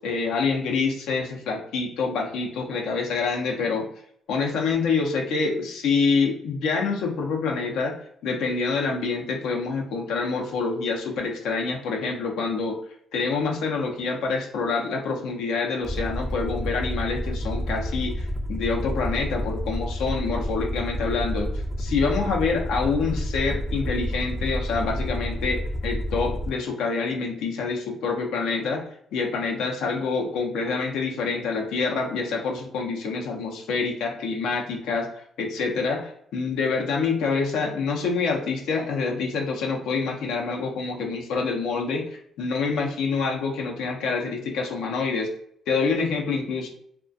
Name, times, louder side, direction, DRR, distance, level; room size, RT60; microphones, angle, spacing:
voice 1, 0.0-3.8 4.3-7.9 8.2-12.8 13.1-21.5 21.8-28.8 29.1-45.3 45.7-46.7, left 4 dB, 85° left, 1 dB, 0.5 m, -26 dB
Aircraft, 15.8-26.5, equal, 10° right, 0.4 m, -29 dB
2.4 x 2.1 x 2.5 m, 0.68 s
cardioid pair, 90°, 0 cm